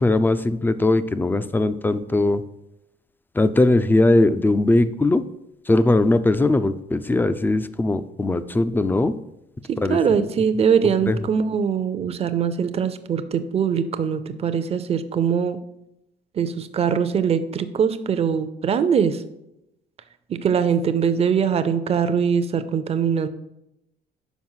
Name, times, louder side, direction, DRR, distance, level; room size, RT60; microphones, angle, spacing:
voice 1, 0.0-2.4 3.3-5.2 5.7-9.1 9.8-10.0 11.1-11.2, left 2 dB, 10° left, 12 dB, 0.3 m, -19 dB
voice 2, 9.7-15.6 16.4-19.2 20.4-23.3, right 7 dB, 35° right, 11 dB, 0.6 m, -22 dB
6.1 x 4.7 x 5.6 m, 0.87 s
cardioid pair, 110°, 17 cm